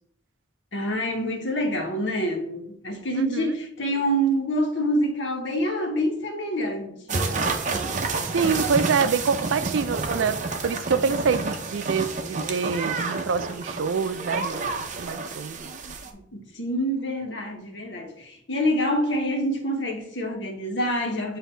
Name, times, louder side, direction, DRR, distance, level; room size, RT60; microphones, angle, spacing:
voice 1, 0.7-7.3 10.9-11.0 16.3-21.4, equal, 70° left, 1.2 m, -26 dB
voice 2, 3.1-3.6 8.3-10.4 10.6-14.7 15.0-15.7, right 5 dB, 80° right, 0.4 m, -26 dB
sound 1, 7.1-16.1, right 3 dB, 40° right, 0.7 m, -29 dB
8.1 x 2.7 x 4.4 m
head